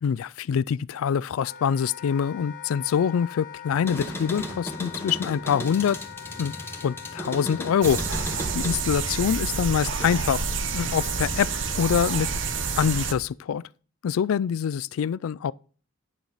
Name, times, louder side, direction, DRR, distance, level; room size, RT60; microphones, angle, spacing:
voice 1, 0.0-6.0 6.4-6.5 6.8-10.4 10.7-11.5 11.8-12.3 12.8-13.6 14.0-15.5, left 7 dB, 80° left, 0.3 m, -25 dB
Wind instrument woodwind instrument, 1.4-13.2, left 9 dB, 40° left, 1.2 m, -43 dB
sound 1, 3.7-10.4 10.8-11.6, left 1 dB, 10° left, 1.1 m, -37 dB
sound 2, 7.8-13.1, right 5 dB, 60° right, 0.9 m, -28 dB
9.3 x 7.1 x 3.9 m
head